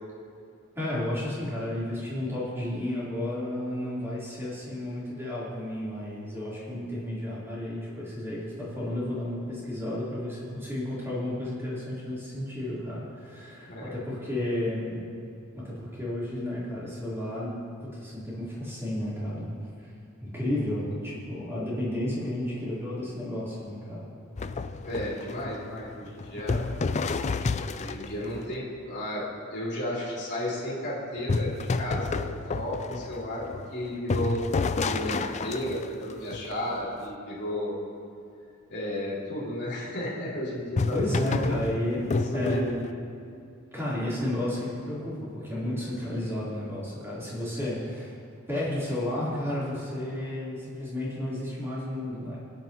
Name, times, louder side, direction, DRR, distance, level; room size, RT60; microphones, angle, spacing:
voice 1, 0.7-15.1 15.5-19.5 19.8-19.9 20.2-24.1 40.9-42.6 43.7-48.2 48.5-52.4, left 1 dB, 10° right, -9 dB, 3.7 m, -32 dB
sound 1, 24.4-28.3 31.3-37.0 40.7-42.9, left 4 dB, 35° left, 0.4 m, -30 dB
voice 2, 24.8-26.7 27.8-31.5 31.8-33.4 33.7-34.4 34.8-37.8 38.7-41.0 41.2-41.5 42.1-42.9, left 1 dB, 55° left, -7 dB, 3.6 m, -33 dB
24.0 x 9.3 x 3.0 m, 2.5 s
head